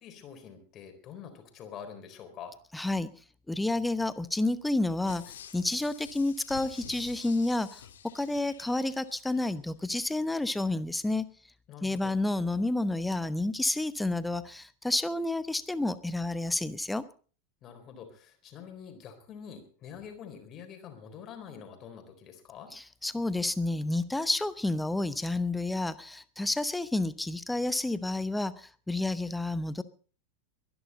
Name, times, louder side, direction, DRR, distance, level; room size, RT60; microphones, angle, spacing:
voice 1, 0.0-2.6 11.7-12.2 17.6-22.7, left 7 dB, 30° left, 6 dB, 4.0 m, -46 dB
voice 2, 2.7-3.1 3.5-7.8 8.1-11.2 11.8-17.0 22.7-29.8, left 2 dB, 5° left, 15 dB, 1.0 m, -30 dB
sound 1, 5.1-9.5 9.9-10.0, left 9 dB, 60° left, 1.7 m, -49 dB
23.0 x 11.0 x 4.1 m, 0.40 s
figure-of-eight pair, 90°, 0 cm